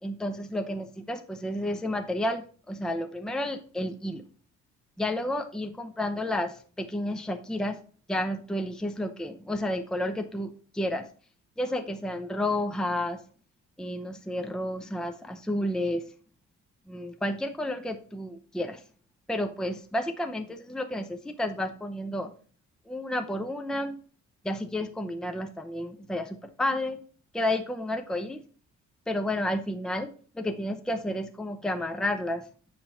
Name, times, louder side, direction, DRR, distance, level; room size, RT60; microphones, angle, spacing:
voice 1, 0.0-4.2 5.0-7.8 8.1-11.1 11.6-13.2 13.8-16.0 16.9-18.8 19.3-22.3 22.9-24.0 24.4-27.0 27.3-28.4 29.1-32.5, left 1 dB, ahead, 7 dB, 0.7 m, -31 dB
9.6 x 3.4 x 5.7 m, 0.42 s
cardioid pair, 90°, 30 cm